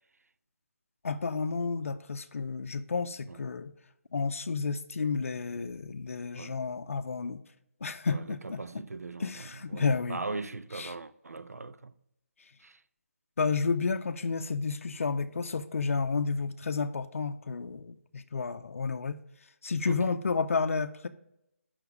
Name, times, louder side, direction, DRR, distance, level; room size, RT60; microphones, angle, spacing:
voice 1, 1.0-3.7 4.1-7.4 7.8-8.6 9.2-10.2 10.7-10.9 13.4-19.2 19.6-21.1, left 4 dB, 65° left, 0.5 m, -31 dB
voice 2, 8.1-11.9 12.6-12.8 19.9-20.2, right 3 dB, 90° right, 0.5 m, -40 dB
7.0 x 5.7 x 4.6 m
figure-of-eight pair, 165°, 8 cm